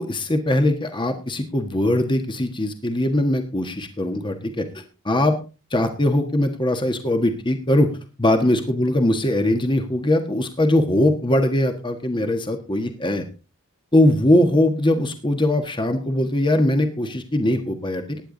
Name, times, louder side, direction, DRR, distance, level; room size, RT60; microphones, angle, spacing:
voice 1, 0.0-5.3 5.7-7.9 8.2-13.2 13.9-18.2, left 1 dB, 20° left, 6 dB, 1.5 m, -21 dB
16.0 x 10.0 x 3.9 m, 0.32 s
head